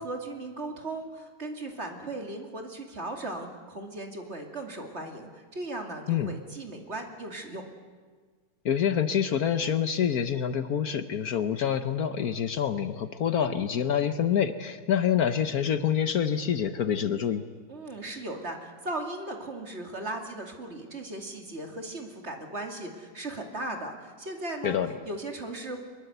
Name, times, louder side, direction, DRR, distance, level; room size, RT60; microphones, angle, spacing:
voice 1, 0.0-7.6 17.7-24.8 25.1-25.8, right 2 dB, 40° right, 3 dB, 2.8 m, -37 dB
voice 2, 8.6-17.4 24.6-24.9, left 8 dB, 60° left, 10 dB, 1.3 m, -26 dB
23.5 x 22.5 x 8.0 m, 1.5 s
omnidirectional pair, 1.9 m